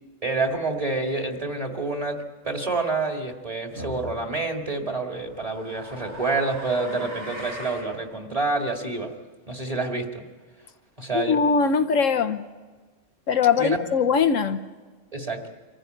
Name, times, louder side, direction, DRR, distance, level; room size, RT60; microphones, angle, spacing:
voice 1, 0.2-9.1 9.5-10.2 11.0-11.4 13.5-13.8 15.1-15.4, right 3 dB, 25° right, 3 dB, 2.2 m, -28 dB
sound 1, 3.8-4.1 5.1-7.9, right 1 dB, 85° right, 6.7 m, -39 dB
voice 2, 11.1-12.4 13.3-14.6, left 6 dB, 75° left, 8 dB, 1.3 m, -21 dB
25.5 x 15.0 x 9.2 m, 1.4 s
omnidirectional pair, 1.4 m